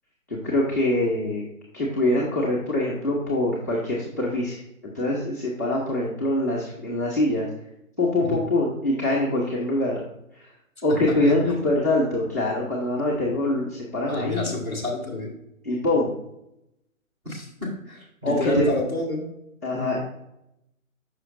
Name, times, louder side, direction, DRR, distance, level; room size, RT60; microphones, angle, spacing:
voice 1, 0.3-1.4 1.7-7.5 8.0-10.0 10.3-10.5 10.8-14.5 15.6-16.1 18.2-18.7 19.6-20.0, left 1 dB, 15° left, -8 dB, 0.5 m, -24 dB
voice 2, 11.2-11.6 14.1-15.3 17.2-19.3 19.7-20.0, left 2 dB, 10° right, -5 dB, 1.0 m, -30 dB
7.9 x 5.7 x 2.5 m, 0.82 s
hypercardioid pair, 160°, 41 cm